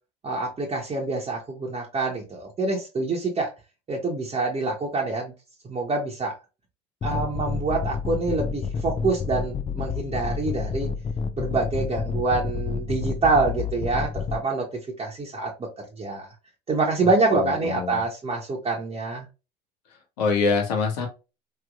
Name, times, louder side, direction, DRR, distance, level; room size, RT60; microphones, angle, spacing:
voice 1, 0.2-3.5 3.9-5.3 5.6-6.4 7.0-10.9 11.4-15.7 16.0-16.3 16.7-19.3, right 3 dB, 30° right, 1.1 m, -26 dB
sound 1, 7.0-14.4, left 5 dB, 25° left, 0.4 m, -29 dB
voice 2, 17.0-18.0 20.2-21.1, left 4 dB, 80° left, 1.3 m, -25 dB
3.2 x 3.1 x 2.4 m
hypercardioid pair, 75°, 21 cm